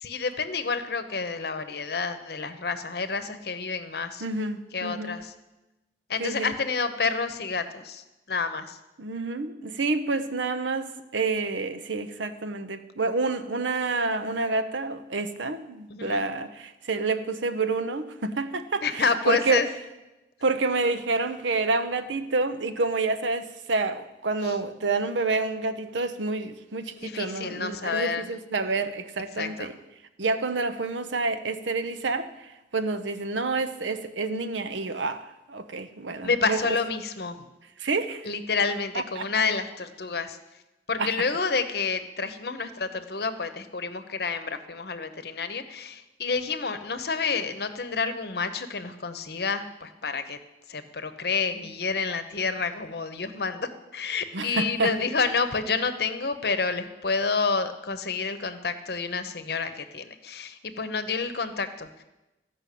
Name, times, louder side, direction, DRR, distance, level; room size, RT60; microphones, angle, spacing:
voice 1, 0.0-4.2 4.7-5.3 6.1-8.8 15.9-16.2 18.8-19.7 24.4-24.5 27.0-28.3 29.4-29.7 36.2-37.4 38.3-40.4 40.9-50.4 50.7-62.0, left 4 dB, 60° left, 10 dB, 0.9 m, -29 dB
voice 2, 4.2-5.2 6.2-6.5 9.0-19.6 20.4-29.7 30.2-36.8 37.8-38.3 39.2-39.3 41.0-41.1 54.3-54.9, right 3 dB, 85° right, 10 dB, 0.8 m, -28 dB
13.5 x 5.6 x 8.4 m, 1.0 s
head